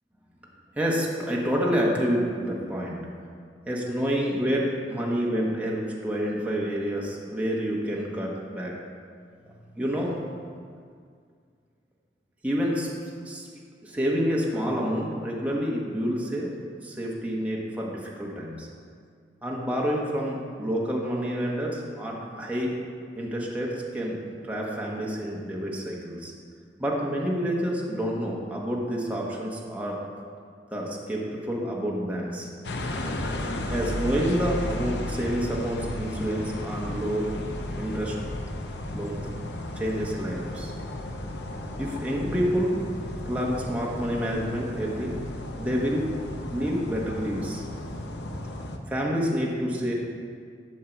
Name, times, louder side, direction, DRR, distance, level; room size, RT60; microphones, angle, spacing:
voice 1, 0.7-3.0 3.7-8.7 9.7-10.4 12.4-12.9 13.2-13.5 13.8-16.5 16.8-18.7 19.4-22.7 23.2-26.3 26.8-30.0 30.7-32.5 33.7-37.3 37.8-38.1 38.9-39.2 39.7-40.7 41.8-42.8 43.2-45.1 45.6-46.1 46.4-47.6 48.9-49.9, equal, 10° right, -4 dB, 1.2 m, -28 dB
sound 1, 32.6-48.8, left 1 dB, 75° left, 0.8 m, -34 dB
11.5 x 5.6 x 4.5 m, 2.1 s
head